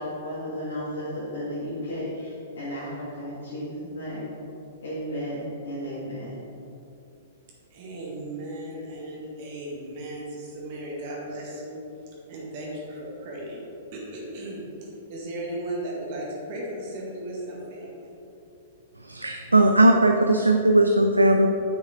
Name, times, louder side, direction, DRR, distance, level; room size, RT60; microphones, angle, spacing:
voice 1, 0.0-4.3 4.8-6.3, equal, 60° left, -9 dB, 2.0 m, -33 dB
voice 2, 7.7-11.8 12.3-13.6 13.9-14.6 15.1-18.2, right 1 dB, 45° right, -4 dB, 1.9 m, -36 dB
voice 3, 19.0-21.5, right 1 dB, 80° right, 5 dB, 0.4 m, -18 dB
9.0 x 7.3 x 3.7 m, 2.8 s
figure-of-eight pair, 105°, 0 cm